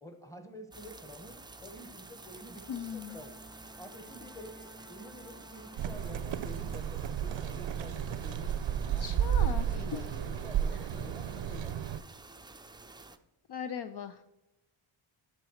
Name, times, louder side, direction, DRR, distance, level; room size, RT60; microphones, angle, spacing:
voice 1, 0.0-2.6 2.9-3.4 3.8-8.5 8.9-9.1 9.4-11.9, equal, 5° left, 5 dB, 1.1 m, -49 dB
sound 1, 0.7-13.2, right 2 dB, 10° right, 0.3 m, -51 dB
Bowed string instrument, 2.2-6.9, equal, 30° left, 2.3 m, -55 dB
voice 2, 2.7-3.2 9.0-10.1 13.5-14.2, left 8 dB, 55° left, 9 dB, 0.5 m, -39 dB
sound 2, 5.8-12.0, right 9 dB, 65° right, 0.5 m, -32 dB
11.5 x 4.1 x 6.3 m, 0.97 s
wide cardioid pair, 155°, 48 cm